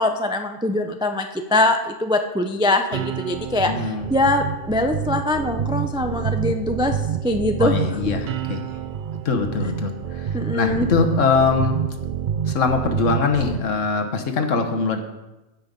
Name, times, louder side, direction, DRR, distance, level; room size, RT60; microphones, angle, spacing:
voice 1, 0.0-3.7 4.1-7.0 7.2-7.8 10.3-10.9, left 1 dB, 5° right, 5 dB, 0.4 m, -22 dB
sound 1, 2.9-13.6, right 8 dB, 65° right, 0.5 m, -28 dB
voice 2, 3.7-4.1 7.6-8.8 9.2-12.0 12.5-15.0, left 4 dB, 65° left, 5 dB, 1.4 m, -22 dB
15.5 x 5.7 x 5.2 m, 1.0 s
omnidirectional pair, 1.4 m